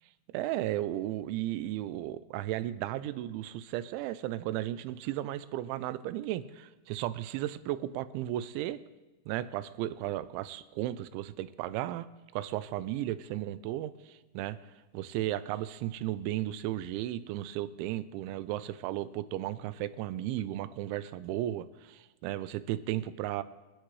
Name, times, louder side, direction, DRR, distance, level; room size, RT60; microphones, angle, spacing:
voice 1, 0.3-8.8 9.3-12.1 12.3-14.6 14.9-23.4, right 14 dB, 85° right, 14 dB, 3.0 m, -35 dB
28.5 x 12.0 x 3.2 m, 1.2 s
omnidirectional pair, 5.3 m